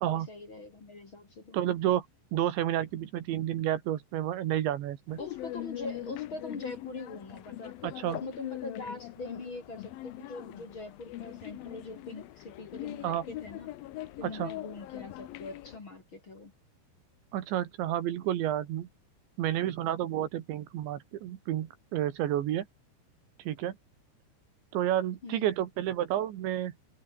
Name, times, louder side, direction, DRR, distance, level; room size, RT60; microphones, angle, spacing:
voice 1, 0.0-1.6 5.2-7.8 8.1-13.7 14.2-16.5 25.2-25.5, left 2 dB, 30° left, 3.3 m, -43 dB
voice 2, 1.5-2.1 2.3-5.2 7.8-8.2 13.0-13.2 14.2-14.5 17.3-18.9 19.4-22.7 23.5-23.8 24.7-26.7, right 12 dB, 75° right, 3.9 m, -30 dB
sound 1, 5.1-15.8, left 15 dB, 75° left, 2.2 m, -42 dB
omnidirectional pair, 5.4 m